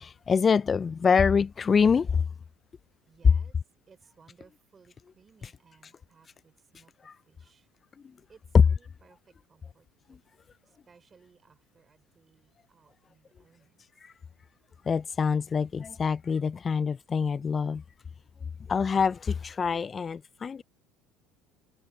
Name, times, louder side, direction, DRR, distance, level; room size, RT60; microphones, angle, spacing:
voice 1, 0.0-2.2 7.1-7.2 14.0-14.1 14.9-17.8 18.7-20.6, left 6 dB, 30° left, 0.4 m, -25 dB
voice 2, 3.1-3.6 3.9-7.7 8.3-10.3 10.6-13.8, right 5 dB, 30° right, 5.4 m, -61 dB
supercardioid pair, 90°, 0 cm